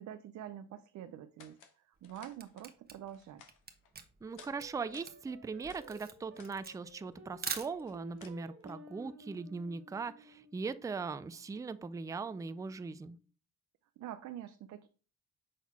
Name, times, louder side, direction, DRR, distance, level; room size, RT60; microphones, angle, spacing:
voice 1, 0.0-3.4 14.0-14.9, right 11 dB, 65° right, 8 dB, 0.5 m, -46 dB
sound 1, 1.4-1.8 2.0-2.7 3.1-3.9 4.3-4.6 4.8-5.9 6.3-6.6 6.9-8.7, left 7 dB, 85° left, 0.9 m, -58 dB
Camera, 2.0-8.2, right 5 dB, 30° right, 1.0 m, -44 dB
voice 2, 4.2-13.2, right 4 dB, 10° right, 14 dB, 0.3 m, -40 dB
sound 2, 4.3-12.9, right 1 dB, 45° right, 1.6 m, -56 dB
6.2 x 3.9 x 4.2 m, 0.37 s
cardioid pair, 90°, 30 cm